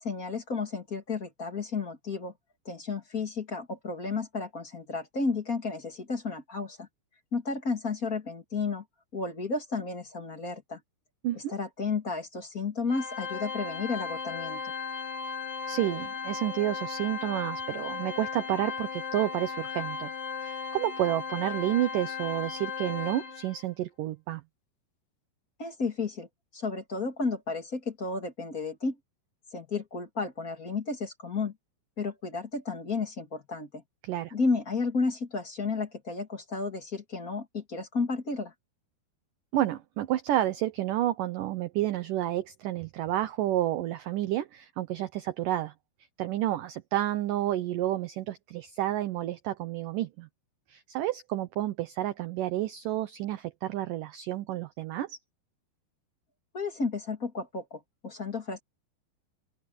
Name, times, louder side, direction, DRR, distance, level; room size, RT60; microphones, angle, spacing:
voice 1, 0.0-2.3 2.6-6.9 7.3-8.8 9.1-10.8 11.3-14.6 25.6-26.3 26.5-29.0 29.5-31.5 32.0-33.8 34.3-38.5 56.5-58.6, left 4 dB, 30° left, 2.0 m, -32 dB
Organ, 12.9-23.6, left 5 dB, 50° left, 4.2 m, -36 dB
voice 2, 15.7-20.1 20.4-24.4 34.0-34.3 39.5-45.7 46.2-50.3 50.7-55.2, right 14 dB, 70° right, 2.1 m, -30 dB
open air
omnidirectional pair, 4.7 m